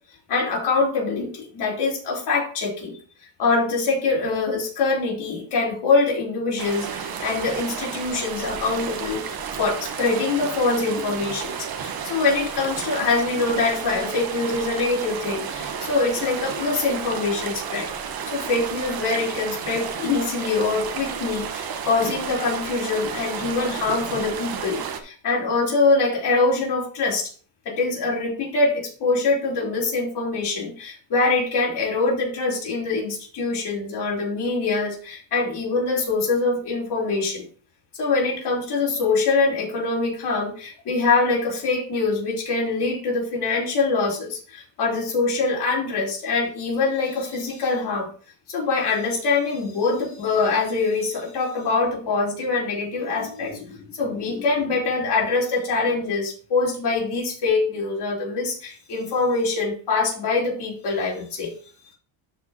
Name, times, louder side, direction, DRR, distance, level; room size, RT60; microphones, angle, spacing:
voice 1, 0.3-3.0 3.4-9.2 9.6-17.9 18.2-27.3 27.7-37.4 37.9-48.1 48.5-61.5, left 3 dB, 50° left, -3 dB, 4.1 m, -24 dB
sound 1, 6.6-25.0, right 7 dB, 45° right, 1.3 m, -32 dB
12.5 x 5.4 x 2.9 m, 0.42 s
cardioid pair, 125°, 49 cm